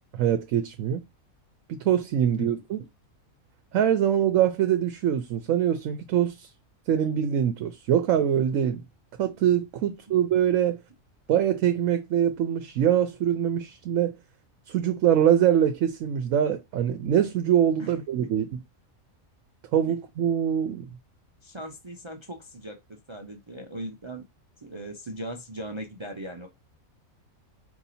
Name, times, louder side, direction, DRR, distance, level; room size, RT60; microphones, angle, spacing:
voice 1, 0.1-1.0 1.7-2.8 3.7-6.5 6.9-8.8 9.2-10.8 11.3-14.1 14.7-18.5 19.7-20.9, right 10 dB, 75° right, 0.9 m, -23 dB
voice 2, 21.4-24.2 24.6-26.5, right 1 dB, 50° right, 0.3 m, -39 dB
4.6 x 2.7 x 4.1 m
omnidirectional pair, 1.4 m